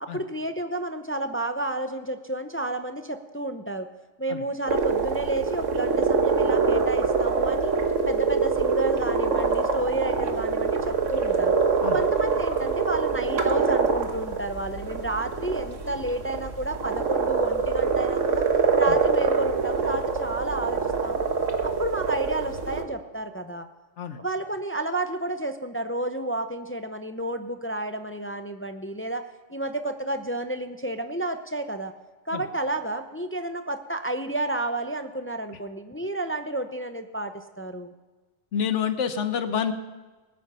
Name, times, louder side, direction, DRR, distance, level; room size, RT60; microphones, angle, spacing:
voice 1, 0.0-3.9 4.2-7.7 8.1-11.6 11.9-18.4 18.8-21.3 21.6-23.7 24.2-29.2 29.5-31.9 32.3-37.9, right 2 dB, 15° left, 8 dB, 0.4 m, -31 dB
sound 1, 4.7-22.8, right 5 dB, 80° right, 1.6 m, -25 dB
voice 2, 38.5-39.7, left 8 dB, 75° left, 9 dB, 1.2 m, -28 dB
19.5 x 9.4 x 5.6 m, 1.3 s
omnidirectional pair, 1.3 m